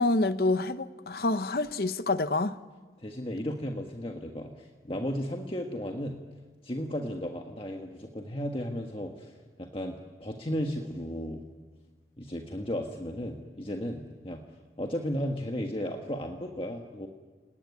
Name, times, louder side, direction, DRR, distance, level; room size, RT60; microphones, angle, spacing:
voice 1, 0.0-2.6, left 2 dB, 55° left, 0.9 m, -27 dB
voice 2, 3.0-6.2 6.6-11.4 12.2-14.4 14.8-17.1, equal, 30° left, 1.6 m, -34 dB
29.5 x 19.0 x 9.7 m
head